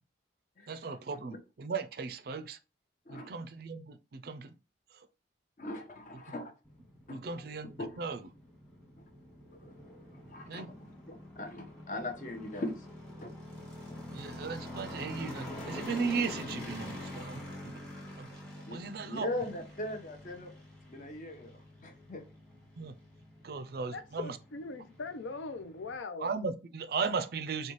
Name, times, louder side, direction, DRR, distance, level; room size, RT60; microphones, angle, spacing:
voice 1, 0.7-2.6 3.1-4.6 4.9-5.1 6.1-6.4 7.1-8.3 10.5-10.7 14.1-17.8 18.2-19.3 22.8-23.0 23.4-24.4 26.2-27.7, right 5 dB, 55° right, 0.4 m, -37 dB
voice 2, 5.6-6.5 7.1-7.4 7.8-8.0 9.5-10.7 11.1-12.9 13.2-13.3 13.9-14.0 18.7-18.8 19.1-20.5 20.9-22.2, left 1 dB, 45° left, 0.7 m, -40 dB
sound 1, 6.7-26.0, left 1 dB, 5° left, 1.2 m, -46 dB
voice 3, 23.9-26.3, left 3 dB, 85° left, 0.5 m, -40 dB
4.0 x 2.3 x 3.0 m
head